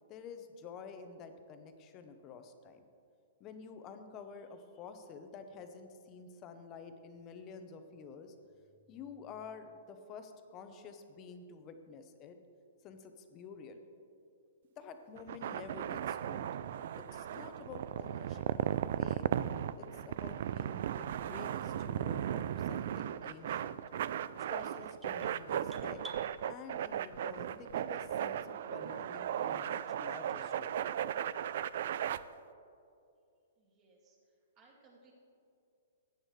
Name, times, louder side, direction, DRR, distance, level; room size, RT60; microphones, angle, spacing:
voice 1, 0.1-2.8 3.4-8.3 8.9-12.4 12.8-13.8 14.8-16.5 17.0-19.4 19.8-23.8 24.5-26.0 26.5-30.9, left 5 dB, 25° left, 7 dB, 0.8 m, -50 dB
sound 1, 15.2-32.2, right 10 dB, 60° right, 0.3 m, -36 dB
sound 2, 24.4-26.2, right 1 dB, 10° right, 0.8 m, -52 dB
voice 2, 33.6-34.2 34.6-35.1, right 3 dB, 30° right, -3 dB, 2.4 m, -63 dB
15.5 x 9.6 x 3.3 m, 2.5 s
hypercardioid pair, 155°, 0 cm